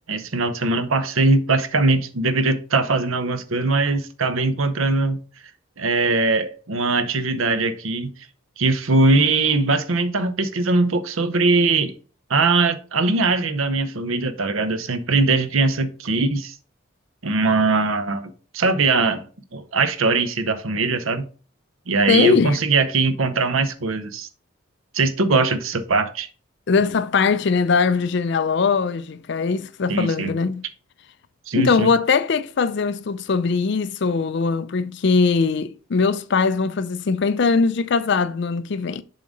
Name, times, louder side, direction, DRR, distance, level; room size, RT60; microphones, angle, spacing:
voice 1, 0.1-5.2 5.8-8.1 8.6-11.9 12.3-16.5 17.2-19.2 19.5-21.3 21.9-24.3 24.9-26.3 29.9-30.3 31.5-31.9, right 3 dB, 75° right, 0.8 m, -21 dB
voice 2, 22.1-22.6 26.7-30.6 31.6-39.0, left 4 dB, 55° left, 0.4 m, -21 dB
7.1 x 3.8 x 5.1 m
head